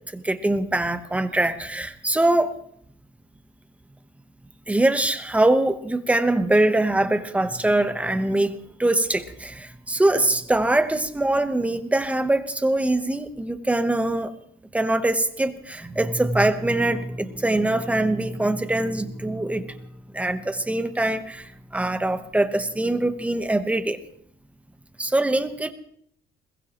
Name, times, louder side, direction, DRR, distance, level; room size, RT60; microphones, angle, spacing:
voice 1, 0.1-2.5 4.7-14.3 14.7-19.9 20.1-24.0 25.0-25.7, right 1 dB, 5° right, 10 dB, 0.9 m, -23 dB
21.5 x 21.0 x 3.0 m, 0.66 s
cardioid pair, 160°, 18 cm